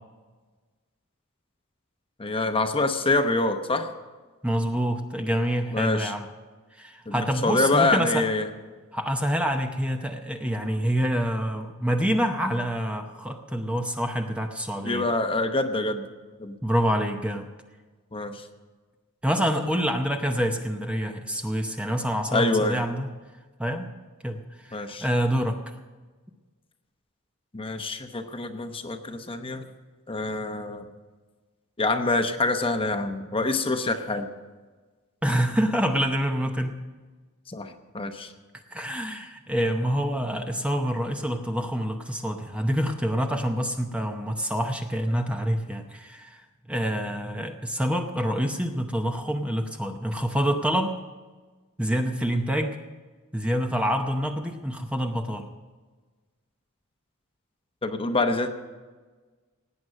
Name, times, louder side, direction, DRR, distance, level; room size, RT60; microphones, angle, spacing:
voice 1, 2.2-3.9 5.7-6.1 7.1-8.5 14.8-16.1 16.4-16.6 18.1-18.4 22.3-22.8 24.7-25.1 27.5-29.7 30.1-30.9 31.8-34.3 37.5-38.3 57.8-58.5, left 2 dB, 25° left, 7 dB, 0.9 m, -26 dB
voice 2, 4.4-6.3 6.8-8.3 8.9-15.1 16.6-17.5 19.2-23.1 23.6-23.9 24.2-25.7 35.2-36.7 38.7-46.4 46.7-50.9 51.8-52.8 53.3-55.5, equal, 5° right, 4 dB, 0.7 m, -27 dB
17.5 x 9.3 x 6.5 m, 1.3 s
head